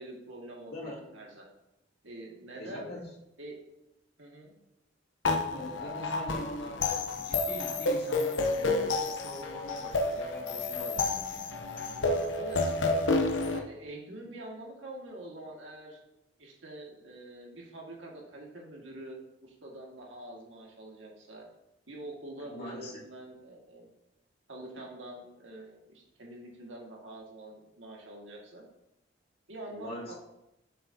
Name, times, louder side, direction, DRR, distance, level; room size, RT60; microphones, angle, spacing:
voice 1, 0.0-1.5 2.0-3.0 3.4-3.6 4.2-4.6 12.3-12.6 13.3-16.0 16.4-21.4 21.9-23.9 24.5-28.7 29.5-30.1, right 1 dB, 90° right, -2 dB, 1.8 m, -45 dB
voice 2, 0.7-1.1 2.6-3.1 5.5-11.5 22.4-23.1 29.7-30.1, left 1 dB, 60° left, -5 dB, 2.2 m, -42 dB
sound 1, 5.2-13.6, left 3 dB, 85° left, 0.8 m, -30 dB
7.6 x 6.6 x 2.7 m, 0.89 s
head